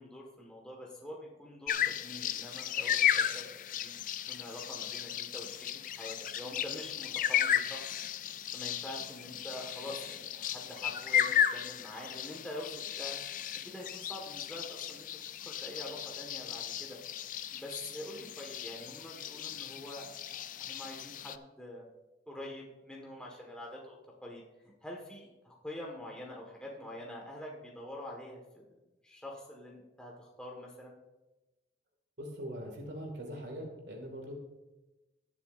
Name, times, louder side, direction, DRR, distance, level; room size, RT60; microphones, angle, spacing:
voice 1, 0.0-4.0 4.3-7.9 8.5-12.7 13.0-13.2 13.6-15.1 15.4-17.0 17.5-21.9 22.3-24.0 24.2-24.4 24.8-28.7 29.0-31.0, left 1 dB, 5° left, -2 dB, 1.6 m, -45 dB
sound 1, 1.7-21.4, left 9 dB, 45° left, 0.4 m, -35 dB
voice 2, 32.2-34.3, equal, 80° right, 2 dB, 2.3 m, -42 dB
20.0 x 7.0 x 2.6 m, 1.1 s
head